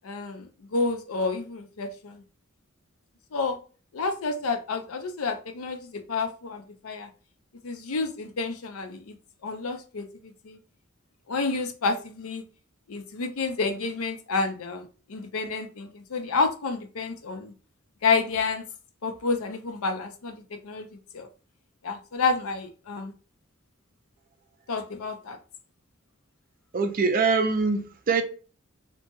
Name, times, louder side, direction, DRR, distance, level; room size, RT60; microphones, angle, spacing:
voice 1, 0.0-2.2 3.3-3.6 3.9-7.1 7.6-9.2 9.4-10.6 11.3-12.4 12.9-17.5 18.0-18.7 19.0-21.3 21.8-23.1 24.7-25.4, left 4 dB, 90° left, 0.6 m, -29 dB
voice 2, 26.7-28.2, right 4 dB, 40° right, 0.4 m, -23 dB
2.8 x 2.2 x 2.9 m
head